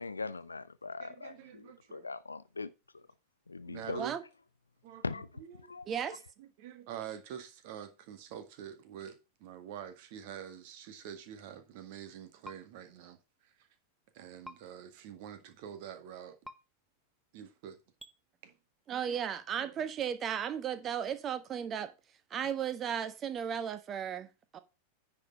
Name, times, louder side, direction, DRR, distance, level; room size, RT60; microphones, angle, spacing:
voice 1, 0.0-2.7 3.5-4.0 5.0-5.3 5.7-5.9, left 4 dB, 80° left, 0.6 m, -40 dB
voice 2, 1.0-2.1 3.7-4.2 4.8-5.7 6.4-13.2 13.4-13.7 14.1-16.4 17.3-17.8 18.4-18.6 18.9-19.1 19.6-19.8, right 9 dB, 50° right, 1.8 m, -46 dB
voice 3, 5.9-6.2 18.9-21.9 22.3-24.6, right 8 dB, 25° right, 1.2 m, -35 dB
sound 1, 12.4-12.6 14.4-14.6 16.4-16.6 18.0-18.1, equal, 5° right, 0.8 m, -46 dB
9.9 x 5.0 x 5.2 m
figure-of-eight pair, 90°, 0 cm